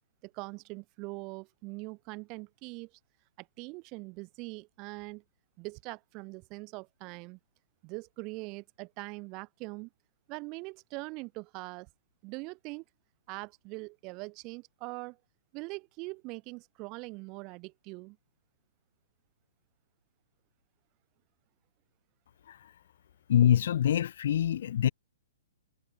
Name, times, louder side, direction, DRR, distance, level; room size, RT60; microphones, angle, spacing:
voice 1, 0.2-2.9 3.4-5.2 5.6-7.4 7.8-9.9 10.3-11.9 12.2-12.8 13.3-15.2 15.5-18.2, right 27 dB, 35° right, 1.3 m, -42 dB
voice 2, 23.3-24.9, left 10 dB, 55° left, 0.6 m, -25 dB
figure-of-eight pair, 120°, 0 cm